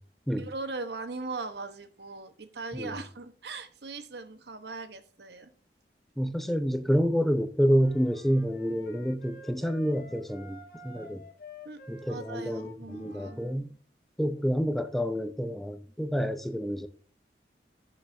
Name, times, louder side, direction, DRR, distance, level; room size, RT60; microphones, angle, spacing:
voice 1, 0.4-5.5 11.6-13.4, right 3 dB, 70° right, 1.0 m, -39 dB
voice 2, 6.2-11.2 11.9-13.7 14.2-16.9, equal, ahead, 0.5 m, -28 dB
sound 1, 7.8-13.6, left 3 dB, 55° left, 1.4 m, -49 dB
16.0 x 6.3 x 2.6 m
head